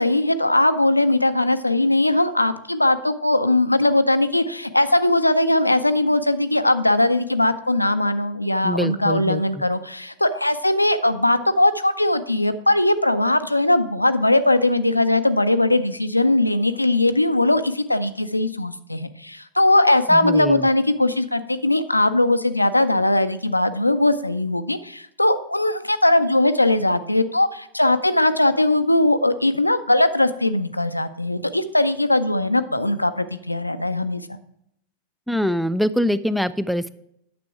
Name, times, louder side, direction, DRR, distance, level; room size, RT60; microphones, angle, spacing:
voice 1, 0.0-34.4, left 1 dB, 85° left, 11 dB, 0.5 m, -20 dB
voice 2, 8.6-9.6 20.1-20.7 35.3-36.9, equal, ahead, 16 dB, 0.4 m, -24 dB
9.4 x 6.8 x 4.8 m, 0.74 s
figure-of-eight pair, 90°, 0 cm